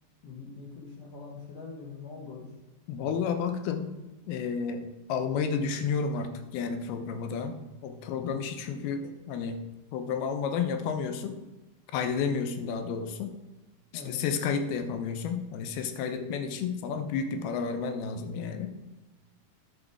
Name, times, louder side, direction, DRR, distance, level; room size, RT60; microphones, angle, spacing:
voice 1, 0.2-2.5 8.2-8.5 12.3-12.4 13.9-14.3, left 5 dB, 55° left, -2 dB, 1.9 m, -43 dB
voice 2, 2.9-3.9 4.3-9.6 9.9-11.4 11.9-13.4 13.9-18.7, left 6 dB, 80° left, 7 dB, 2.7 m, -31 dB
10.5 x 6.3 x 4.8 m, 1.1 s
omnidirectional pair, 4.5 m